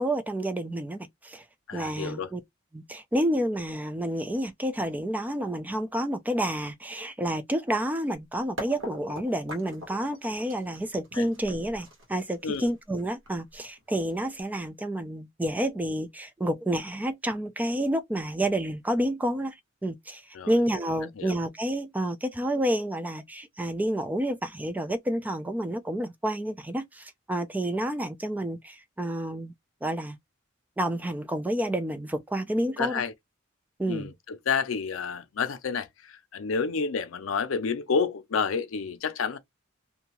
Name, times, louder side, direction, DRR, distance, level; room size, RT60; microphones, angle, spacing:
voice 1, 0.0-1.4 1.7-2.4 2.7-19.6 19.8-29.5 29.8-30.2 30.8-33.0 33.8-34.1, right 1 dB, 10° right, 0.3 m, -29 dB
voice 2, 1.7-2.3 11.2-11.3 12.4-12.7 20.4-20.5 21.2-21.3 32.8-33.1 33.9-35.9 36.3-39.4, left 5 dB, 75° left, 0.5 m, -29 dB
sound 1, 8.6-14.4, equal, 65° right, 1.3 m, -42 dB
2.6 x 2.3 x 2.9 m
head